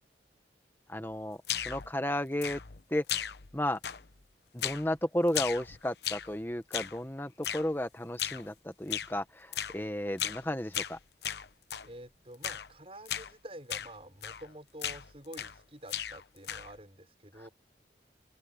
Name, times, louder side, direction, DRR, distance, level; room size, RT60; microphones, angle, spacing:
voice 1, 0.9-1.4 1.6-2.6 2.9-3.0 3.5-3.8 4.5-11.0, left 1 dB, 10° left, 1.2 m, -33 dB
sound 1, 1.4-1.9 2.4-2.8 3.1-3.6 3.8-4.2 4.6-4.9 5.3-6.3 6.7-7.0 7.4-7.7 8.2-8.5 8.9-9.1 9.5-9.8 10.2-10.5 10.7-11.9 12.4-12.7 13.1-13.3 13.7-13.9 14.2-14.5 14.8-15.6 15.9-16.8, left 10 dB, 70° left, 0.9 m, -36 dB
voice 2, 11.8-17.5, right 1 dB, 35° right, 6.4 m, -48 dB
open air
head